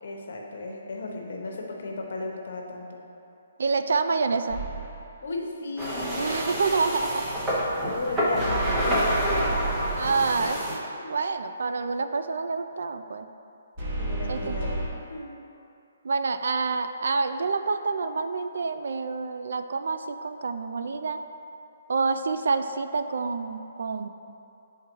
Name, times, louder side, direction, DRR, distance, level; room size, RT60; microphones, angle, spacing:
voice 1, 0.0-3.0 5.2-6.4 7.8-9.7 10.9-11.2 14.0-15.4, left 2 dB, 55° left, 0 dB, 0.8 m, -35 dB
voice 2, 3.6-4.7 6.2-7.2 9.9-10.6 11.1-13.3 14.3-14.6 16.0-21.2 21.9-24.1, right 4 dB, 70° right, 9 dB, 0.3 m, -27 dB
sound 1, 4.5-5.1 8.3-10.4 13.8-14.9, right 2 dB, 25° right, 1.0 m, -31 dB
sound 2, 5.8-10.8, equal, 10° right, 0.7 m, -28 dB
9.4 x 3.6 x 3.0 m, 2.8 s
hypercardioid pair, 175°, 0 cm